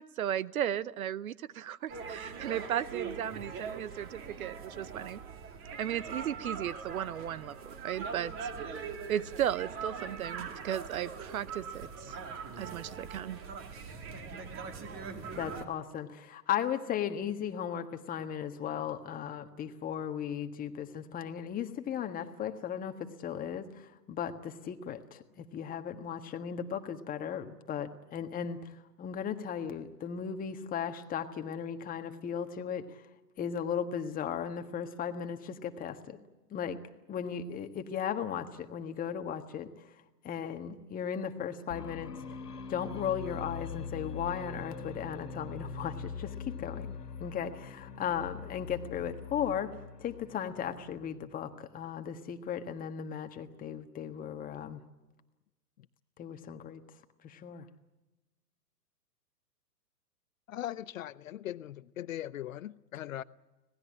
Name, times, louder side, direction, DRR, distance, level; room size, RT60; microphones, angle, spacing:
voice 1, 0.0-5.2 5.8-12.2 12.6-13.4, right 10 dB, 60° right, 18 dB, 0.9 m, -36 dB
sound 1, 1.9-15.6, right 5 dB, 25° right, 2.6 m, -41 dB
voice 2, 15.4-28.7 29.0-33.0 33.4-36.2 36.5-36.8 37.1-39.8 40.2-42.1 42.7-49.7 50.0-54.8 56.2-56.8 57.2-57.6, left 8 dB, 15° left, 7 dB, 1.5 m, -36 dB
sound 2, 41.7-51.3, left 5 dB, 70° left, 2.0 m, -42 dB
voice 3, 60.5-63.2, left 12 dB, 55° left, 17 dB, 0.8 m, -40 dB
25.5 x 19.0 x 8.7 m, 1.1 s
hypercardioid pair, 125°, 49 cm